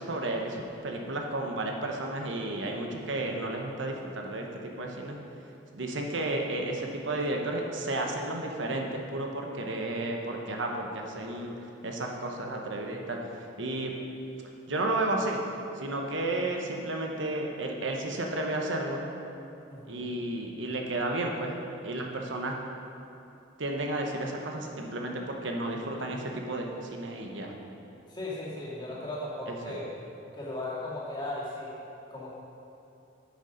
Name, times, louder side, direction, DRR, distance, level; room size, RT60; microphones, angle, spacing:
voice 1, 0.0-5.2 5.7-11.5 11.8-13.9 14.7-15.4 15.8-19.0 19.9-21.5 21.8-22.5 23.6-27.5 29.5-29.7, right 2 dB, 75° right, 1 dB, 1.0 m, -32 dB
voice 2, 19.7-20.1 28.1-29.9 30.3-31.7 32.1-32.3, left 2 dB, 25° left, -7 dB, 2.1 m, -37 dB
9.8 x 6.6 x 5.2 m, 2.9 s
head